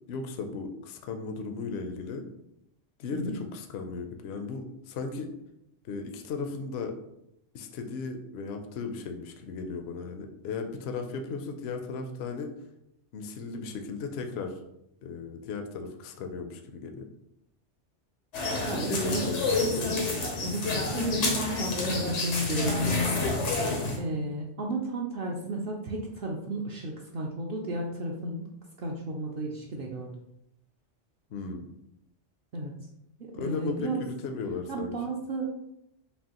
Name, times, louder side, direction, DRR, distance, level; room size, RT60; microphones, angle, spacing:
voice 1, 0.1-2.2 3.0-5.3 5.8-7.0 7.5-12.5 13.1-14.6 15.0-17.1 18.7-19.9 31.3-31.7 33.3-34.9, left 4 dB, 70° left, 5 dB, 0.8 m, -36 dB
sound 1, 18.3-24.0, left 3 dB, 85° left, 1.2 m, -28 dB
voice 2, 18.7-19.2 19.6-20.1 20.4-22.9 24.0-28.5 28.8-30.1 32.5-32.7 33.2-34.0 34.7-35.5, right 2 dB, 60° right, -1 dB, 0.7 m, -33 dB
5.3 x 2.5 x 2.9 m, 0.81 s
omnidirectional pair, 1.2 m